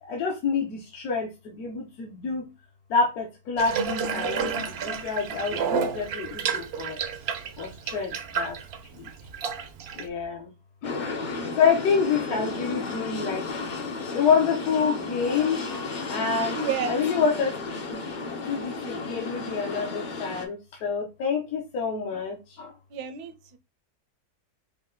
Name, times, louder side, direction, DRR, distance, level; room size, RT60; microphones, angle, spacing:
voice 1, 0.0-2.5 2.9-7.0 7.6-8.6 8.9-9.1 9.9-10.5 10.8-11.0 11.6-13.5 13.8-16.6 16.9-17.6 17.8-18.0 18.4-22.7, left 5 dB, 70° left, 1.3 m, -27 dB
Water tap faucet / Bathtub (filling or washing), 3.6-10.1, right 6 dB, 65° right, 0.6 m, -31 dB
sound 1, 10.8-20.5, left 3 dB, 50° left, 0.6 m, -33 dB
voice 2, 16.5-17.0 22.9-23.6, right 7 dB, 80° right, 1.2 m, -31 dB
5.3 x 2.3 x 3.6 m
omnidirectional pair, 1.7 m